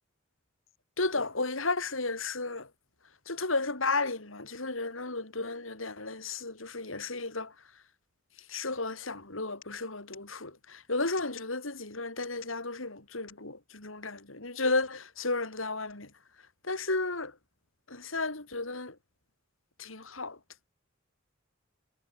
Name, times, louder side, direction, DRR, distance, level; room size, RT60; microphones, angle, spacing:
voice 1, 1.0-2.7 3.3-7.5 8.5-16.1 16.6-17.3 17.9-19.0 19.8-20.4, left 3 dB, 85° left, 5.1 m, -33 dB
head